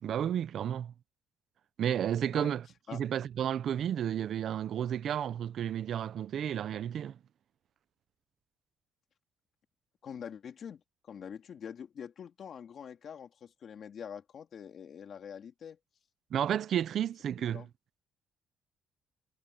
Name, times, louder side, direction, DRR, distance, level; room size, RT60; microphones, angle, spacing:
voice 1, 0.0-0.9 1.8-2.6 2.9-7.2 16.3-17.7, right 9 dB, 55° right, 0.6 m, -32 dB
voice 2, 10.0-15.8 17.5-17.7, left 8 dB, 45° left, 2.8 m, -45 dB
cardioid pair, 145°, 0 cm